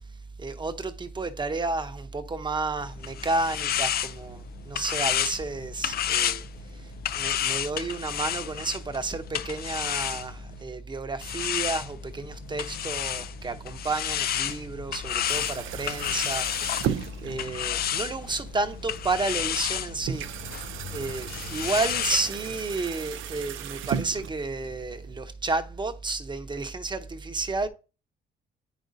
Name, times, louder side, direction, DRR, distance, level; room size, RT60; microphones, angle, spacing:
voice 1, 0.4-6.4 7.2-20.2 20.9-27.7, right 3 dB, 25° right, 0.8 m, -31 dB
sound 1, 2.8-10.6 11.2-22.3, left 10 dB, 50° left, 0.4 m, -31 dB
sound 2, 15.2-25.2, right 9 dB, 80° right, 0.5 m, -36 dB
9.2 x 5.1 x 2.7 m
cardioid pair, 90°, 20 cm